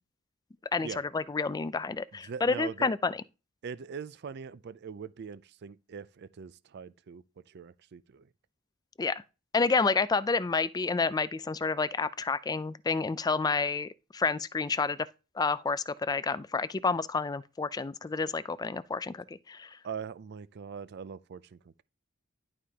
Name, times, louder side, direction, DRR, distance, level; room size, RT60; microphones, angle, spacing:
voice 1, 1.1-3.2 9.0-9.2 9.5-15.0 15.4-19.7, left 4 dB, 20° left, 0.3 m, -29 dB
voice 2, 2.2-2.9 3.6-8.3 19.8-21.8, right 6 dB, 55° right, 0.4 m, -42 dB
11.0 x 4.9 x 2.8 m
head